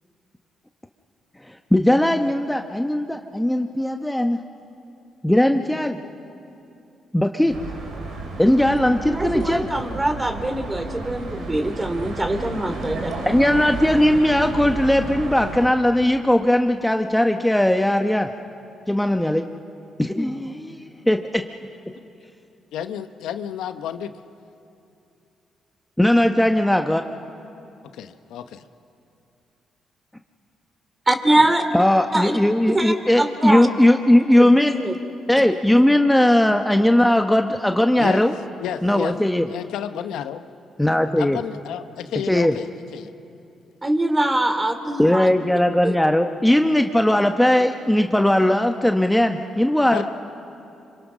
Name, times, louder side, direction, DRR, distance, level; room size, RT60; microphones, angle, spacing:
voice 1, 1.7-4.4 5.2-6.0 7.1-7.5 8.4-9.7 13.3-18.3 18.9-19.4 20.0-21.4 26.0-27.0 31.7-34.7 35.3-38.3 38.8-39.5 40.8-41.4 42.3-42.5 45.0-50.0, left 1 dB, 5° left, 5 dB, 1.2 m, -18 dB
sound 1, 7.5-15.7, right 3 dB, 75° right, 4.1 m, -32 dB
voice 2, 9.1-13.1 31.1-31.6 32.1-32.3 32.7-33.7 34.4-34.9 43.8-45.3 45.8-46.0, right 1 dB, 20° right, 8 dB, 2.8 m, -23 dB
voice 3, 22.7-24.1 27.9-28.6 38.0-38.2 38.6-39.1 39.5-40.4 41.2-43.1 49.9-50.0, left 9 dB, 80° left, 9 dB, 0.9 m, -31 dB
26.5 x 25.5 x 6.2 m, 2.7 s
supercardioid pair, 55°, 0 cm